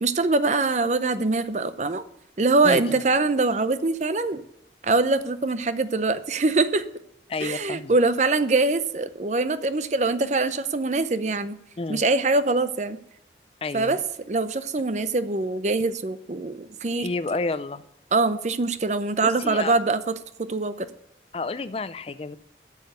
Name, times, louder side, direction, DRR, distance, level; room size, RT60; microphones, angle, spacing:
voice 1, 0.0-2.0 2.4-4.4 4.8-6.8 7.4-11.5 11.9-13.0 13.7-14.0 14.3-17.1 18.1-20.1 20.5-20.9, right 3 dB, 40° right, 13 dB, 0.6 m, -23 dB
voice 2, 7.3-7.9 11.8-12.0 13.6-14.0 17.0-17.8 19.2-19.8 21.3-22.4, left 3 dB, 35° left, 15 dB, 0.4 m, -30 dB
8.4 x 7.2 x 7.9 m, 0.76 s
head